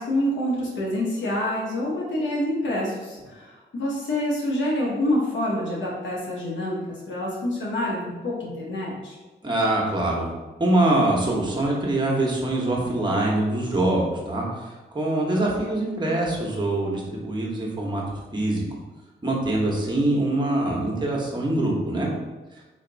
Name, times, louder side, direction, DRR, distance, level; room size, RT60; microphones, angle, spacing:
voice 1, 0.0-9.2, left 1 dB, 85° left, -4 dB, 1.1 m, -27 dB
voice 2, 9.4-10.3 10.6-18.6 19.2-22.1, right 1 dB, 25° right, -2 dB, 1.1 m, -24 dB
3.4 x 2.8 x 4.0 m, 1.2 s
cardioid pair, 75°, 19 cm